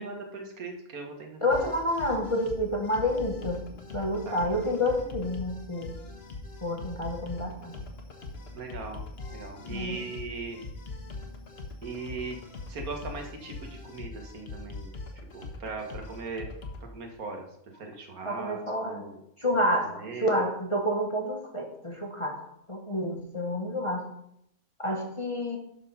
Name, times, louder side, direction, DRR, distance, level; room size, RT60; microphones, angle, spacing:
voice 1, 0.0-1.7 4.3-4.4 8.5-9.0 9.3-10.6 11.8-12.4 12.7-14.9 15.3-16.5 16.9-17.5 17.8-19.2 19.5-20.3, right 3 dB, 80° right, 3 dB, 1.9 m, -39 dB
voice 2, 1.4-3.6 3.9-5.9 6.6-7.8 9.7-10.0 18.2-19.0 19.4-22.4 22.7-24.1 24.8-25.6, left 1 dB, 20° left, 1 dB, 1.2 m, -29 dB
sound 1, 1.5-16.8, left 3 dB, 45° left, 1.3 m, -42 dB
11.0 x 4.4 x 5.6 m, 0.77 s
omnidirectional pair, 1.5 m